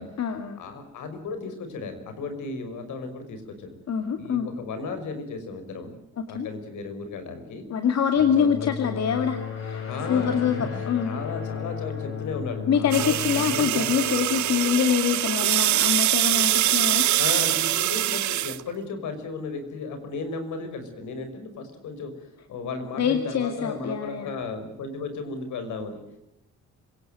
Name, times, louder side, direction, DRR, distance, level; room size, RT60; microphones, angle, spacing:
voice 1, 0.0-0.6 3.9-4.5 6.2-6.5 7.7-10.6 10.9-11.1 12.7-17.1 23.0-24.3, left 7 dB, 60° left, 7 dB, 2.3 m, -25 dB
voice 2, 0.6-3.8 4.2-5.9 6.3-7.6 8.1-8.5 9.9-13.9 17.2-26.0, left 4 dB, 80° left, 8 dB, 5.7 m, -35 dB
sound 1, 8.2-14.9, left 7 dB, 45° left, 7.3 m, -35 dB
sound 2, 12.9-18.6, right 14 dB, 70° right, 0.8 m, -23 dB
26.0 x 17.5 x 9.1 m, 0.85 s
cardioid pair, 90°, 30 cm